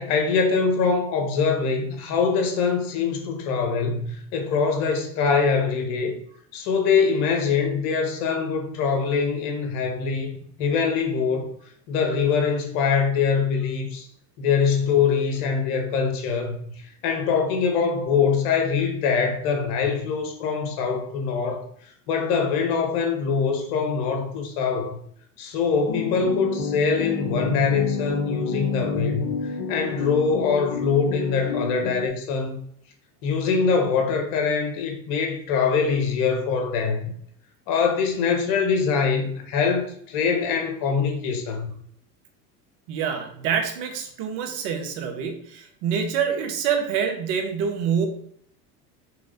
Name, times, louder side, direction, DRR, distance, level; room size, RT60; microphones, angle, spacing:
voice 1, 0.0-6.2 6.5-10.3 10.6-11.5 11.9-14.1 14.4-21.7 22.1-25.0 25.4-32.6 33.2-37.1 37.7-41.7, left 5 dB, 60° left, 1.9 m, -23 dB
sound 1, 25.9-32.1, left 4 dB, 45° left, 1.1 m, -29 dB
voice 2, 42.9-48.1, right 7 dB, 60° right, 1.7 m, -26 dB
5.7 x 3.8 x 5.2 m
hypercardioid pair, 95°, 48 cm